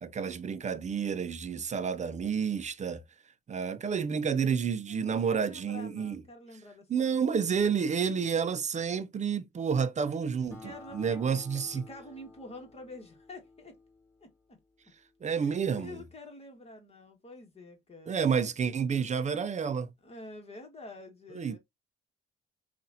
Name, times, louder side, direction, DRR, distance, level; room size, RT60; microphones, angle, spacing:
voice 1, 0.0-3.0 3.5-6.2 6.9-10.6 10.9-11.8 15.2-16.0 18.1-19.9 21.3-21.6, right 6 dB, 35° right, 0.5 m, -30 dB
voice 2, 4.9-7.7 10.5-11.4 11.7-13.8 14.2-14.6 15.3-18.4 20.0-21.6, left 2 dB, 30° left, 1.6 m, -48 dB
Acoustic guitar, 10.5-15.4, left 3 dB, 15° left, 1.9 m, -53 dB
5.5 x 2.5 x 2.7 m
cardioid pair, 90°, 20 cm